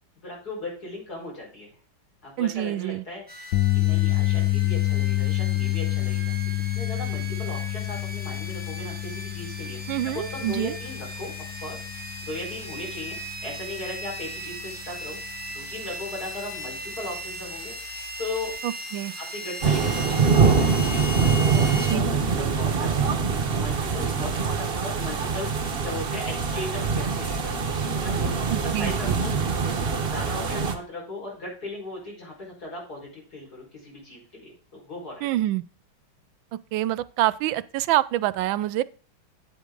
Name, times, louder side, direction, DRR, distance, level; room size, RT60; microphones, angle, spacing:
voice 1, 0.2-1.7 2.2-3.2 3.7-9.8 10.0-11.3 11.6-11.8 12.2-15.2 15.5-17.7 18.2-18.5 19.2-23.1 23.5-25.5 25.8-29.3 30.1-35.3, left 2 dB, 50° left, 5.3 m, -37 dB
voice 2, 2.4-3.0 9.9-10.7 18.6-19.1 21.9-22.0 28.5-29.2 35.2-35.6 36.5-38.8, right 14 dB, 85° right, 1.3 m, -26 dB
sound 1, 3.3-21.9, equal, 5° right, 1.4 m, -38 dB
sound 2, 3.5-15.8 16.1-16.4 18.6-18.7, left 17 dB, 70° left, 1.1 m, -28 dB
sound 3, 19.6-30.7, right 5 dB, 40° right, 1.0 m, -24 dB
9.3 x 8.2 x 3.8 m
omnidirectional pair, 2.1 m